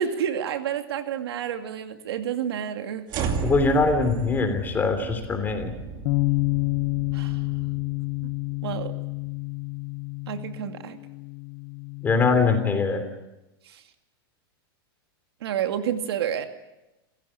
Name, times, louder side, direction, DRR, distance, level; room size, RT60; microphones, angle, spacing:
voice 1, 0.0-3.0 7.1-7.4 8.2-8.3 8.6-8.9 10.3-11.0 13.6-13.8 15.4-16.5, right 9 dB, 85° right, 7 dB, 2.4 m, -29 dB
sound 1, 3.1-9.4, right 5 dB, 35° right, 2.6 m, -35 dB
voice 2, 3.4-5.7 12.0-13.0, left 4 dB, 15° left, 7 dB, 3.3 m, -22 dB
Bass guitar, 6.1-12.3, left 27 dB, 45° left, 0.9 m, -29 dB
27.5 x 16.0 x 8.9 m, 0.99 s
supercardioid pair, 155°, 13 cm